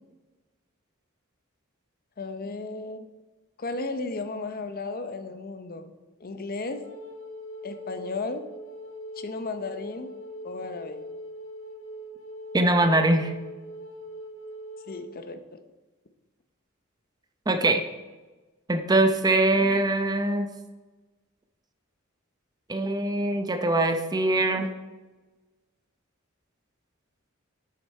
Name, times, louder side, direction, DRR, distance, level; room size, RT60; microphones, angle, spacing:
voice 1, 2.2-3.1 3.6-5.9 6.2-6.8 7.6-8.5 9.2-10.1 10.4-11.1 14.9-15.4, left 3 dB, 45° left, 9 dB, 0.7 m, -34 dB
Wind instrument woodwind instrument, 6.6-15.1, equal, 65° left, 1.7 m, -41 dB
voice 2, 12.5-13.3 17.5-17.8 18.7-20.5 22.7-24.7, right 2 dB, 20° right, 7 dB, 0.7 m, -22 dB
11.0 x 6.6 x 4.3 m, 1.2 s
head